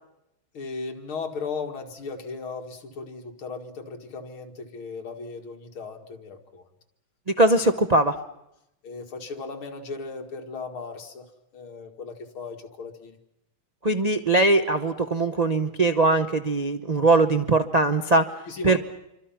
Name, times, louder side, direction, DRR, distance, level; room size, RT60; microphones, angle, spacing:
voice 1, 0.5-6.7 8.8-13.2 18.5-18.8, left 4 dB, 75° left, 3 dB, 3.0 m, -36 dB
voice 2, 7.3-8.2 13.8-18.3 18.6-18.8, right 2 dB, 80° right, 6 dB, 0.3 m, -21 dB
27.0 x 25.0 x 5.9 m, 0.85 s
omnidirectional pair, 2.3 m